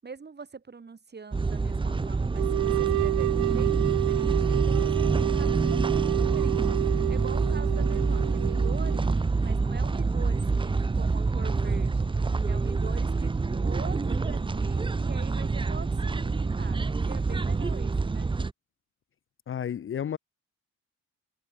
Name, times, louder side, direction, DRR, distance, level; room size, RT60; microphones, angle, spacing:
voice 1, 0.0-9.1 9.4-12.1 12.4-18.3, right 5 dB, 35° right, 7.6 m, -44 dB
sound 1, 1.3-18.5, right 4 dB, 15° right, 0.7 m, -27 dB
sound 2, 2.4-9.1, right 20 dB, 90° right, 0.5 m, -29 dB
voice 2, 19.5-20.2, left 9 dB, 45° left, 0.8 m, -31 dB
cardioid pair, 90°, 30 cm